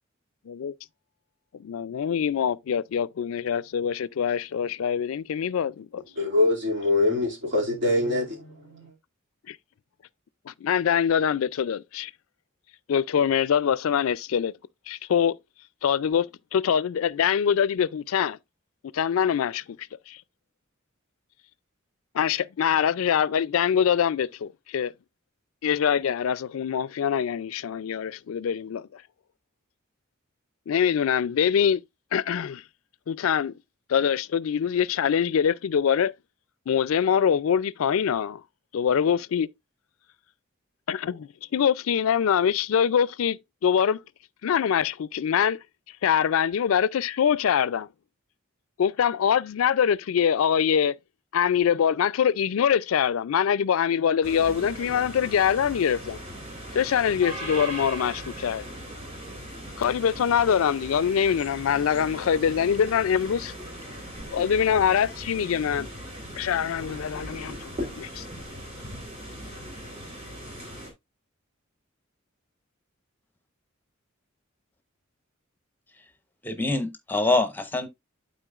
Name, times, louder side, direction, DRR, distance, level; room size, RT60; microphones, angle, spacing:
voice 1, 1.5-6.0 9.5-9.6 10.5-12.1 12.9-14.5 14.9-15.4 15.8-18.4 18.9-19.6 20.1-20.2 22.1-24.9 25.6-29.0 30.7-31.8 32.1-32.6 33.1-33.5 33.9-36.1 36.7-38.4 38.7-39.5 40.9-44.0 44.4-45.6 46.0-47.9 48.8-51.0 51.3-56.2 56.7-58.6 59.8-63.5 64.3-65.9 66.4-68.3, left 8 dB, 80° left, 0.4 m, -24 dB
voice 2, 6.2-8.9, left 2 dB, 60° right, 2.4 m, -24 dB
sound 1, 54.2-70.9, equal, 30° right, 3.1 m, -39 dB
voice 3, 76.4-77.9, left 2 dB, 10° left, 0.9 m, -25 dB
12.0 x 4.2 x 2.4 m
head